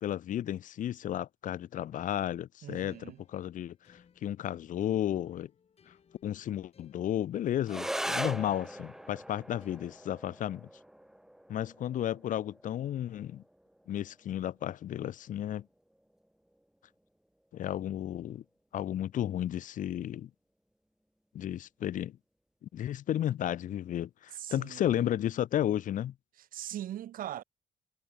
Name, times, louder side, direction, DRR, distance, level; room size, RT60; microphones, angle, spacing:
voice 1, 0.0-3.0 3.3-5.5 5.9-6.0 6.2-10.7 11.5-13.4 13.9-15.6 17.5-18.4 18.7-20.3 21.3-22.2 22.6-26.1, left 11 dB, 65° left, 0.8 m, -33 dB
voice 2, 2.6-3.2 24.3-25.1 26.5-27.4, right 12 dB, 75° right, 1.8 m, -40 dB
sound 1, 2.9-10.6, left 7 dB, 45° left, 4.5 m, -65 dB
sound 2, 7.6-16.6, right 1 dB, 5° right, 1.2 m, -41 dB
cardioid pair, 130°, 14 cm